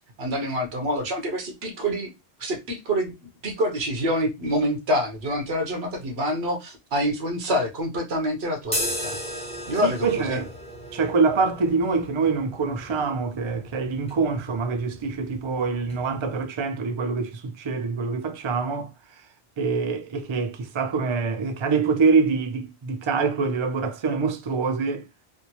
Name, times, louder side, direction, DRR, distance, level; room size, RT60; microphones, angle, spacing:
voice 1, 0.2-2.1 2.4-9.2 9.7-10.4, equal, 80° right, 1.2 m, -26 dB
sound 1, 8.6-16.4, equal, 5° left, 1.3 m, -36 dB
voice 2, 9.8-10.5 10.9-18.9 19.6-25.0, right 4 dB, 45° right, 0.4 m, -25 dB
3.4 x 2.6 x 2.8 m
omnidirectional pair, 1.0 m